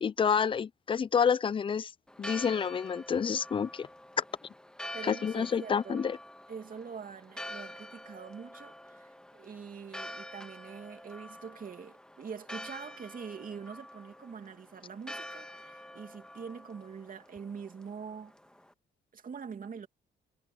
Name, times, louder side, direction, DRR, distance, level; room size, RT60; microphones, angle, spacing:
voice 1, 0.0-1.9 2.2-3.9 4.2-4.3 5.0-6.2, left 7 dB, 25° left, 0.4 m, -28 dB
Church bell, 2.1-18.7, left 1 dB, 5° left, 1.9 m, -47 dB
voice 2, 4.9-6.1 6.5-18.3 19.1-19.9, right 6 dB, 45° right, 2.7 m, -44 dB
cardioid pair, 90°, 20 cm